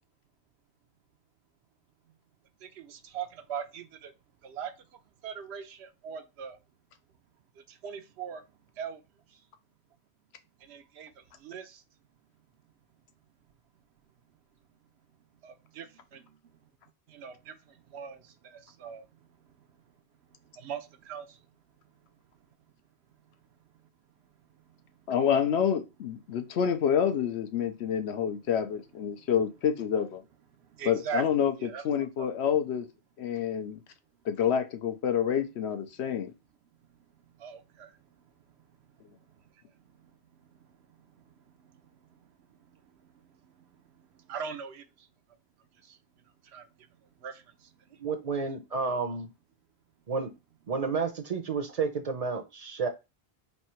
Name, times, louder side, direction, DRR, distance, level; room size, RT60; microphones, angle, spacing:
voice 1, 2.6-4.1 4.4-6.6 7.6-8.4 8.8-9.0 9.3-9.4 10.6-11.8 15.4-16.7 17.1-19.5 20.4-21.4 24.5-24.8 29.1-29.3 30.6-31.2 31.6-31.8 32.2-32.6 37.3-38.0 39.3-40.1 40.4-45.1 45.8-46.0 46.4-47.7, right 7 dB, 85° right, 0.9 m, -43 dB
voice 2, 25.1-30.2 30.9-32.9 33.2-33.8 34.3-36.3, left 8 dB, 90° left, 0.9 m, -28 dB
voice 3, 48.0-49.3 50.1-50.3 50.7-52.9, right 5 dB, 45° right, 0.6 m, -31 dB
3.4 x 2.7 x 4.3 m
omnidirectional pair, 1.1 m